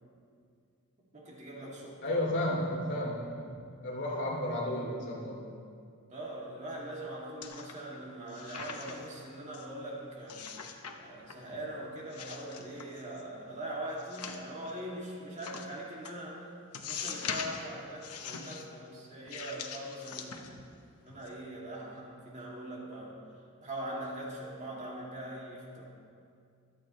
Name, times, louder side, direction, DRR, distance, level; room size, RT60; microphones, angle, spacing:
voice 1, 1.1-2.2 6.1-10.4 11.0-16.5 16.8-20.7 21.0-23.2 23.6-25.8, right 1 dB, 35° right, -4 dB, 2.5 m, -42 dB
voice 2, 2.0-3.5 3.8-5.4, left 1 dB, 55° left, -4 dB, 2.8 m, -32 dB
sound 1, 7.4-8.0 8.3-9.1 9.5-9.7 10.3-11.0 11.3-11.7 12.1-13.2 14.0-14.7 15.4-15.7 16.1-16.2 16.7-17.7 18.0-18.7 19.3-20.8 21.1-21.3, left 6 dB, 80° left, 1.0 m, -42 dB
25.5 x 8.8 x 3.2 m, 2.3 s
head